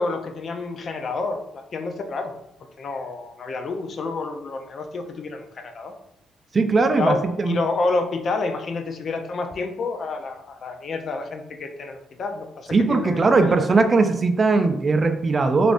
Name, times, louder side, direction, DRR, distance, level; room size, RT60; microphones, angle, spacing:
voice 1, 0.0-2.3 2.8-5.9 7.0-13.6, left 3 dB, 50° left, 6 dB, 0.4 m, -29 dB
voice 2, 6.5-7.6 12.7-15.7, right 3 dB, 35° right, 8 dB, 0.3 m, -19 dB
3.4 x 2.5 x 2.5 m, 0.80 s
cardioid pair, 90°, 0 cm